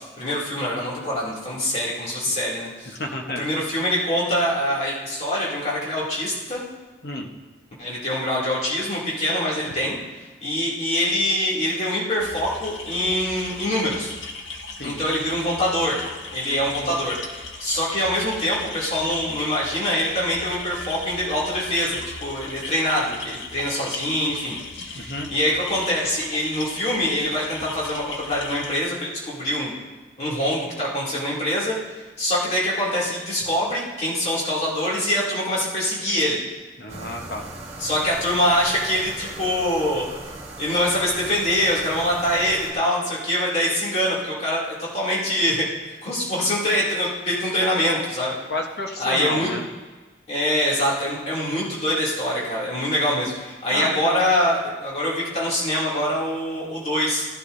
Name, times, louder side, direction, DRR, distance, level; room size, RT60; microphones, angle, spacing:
voice 1, 0.2-2.9 3.4-6.6 7.8-10.0 10.4-14.1 14.8-16.0 16.3-24.6 24.8-29.7 30.2-31.8 32.2-36.4 37.8-40.1 40.6-45.7 46.0-48.3 49.0-49.5 50.3-57.3, left 1 dB, 35° left, -6 dB, 2.8 m, -24 dB
voice 2, 3.0-3.4 7.0-7.3 14.8-15.0 16.8-17.0 24.9-25.3 36.8-37.4 48.5-49.6 53.7-54.3, left 1 dB, 55° left, 2 dB, 1.2 m, -30 dB
sound 1, 12.2-28.8, left 3 dB, 85° left, 1.0 m, -37 dB
sound 2, 36.9-42.7, right 2 dB, 35° right, 1.7 m, -38 dB
13.5 x 11.5 x 2.7 m, 1.3 s
head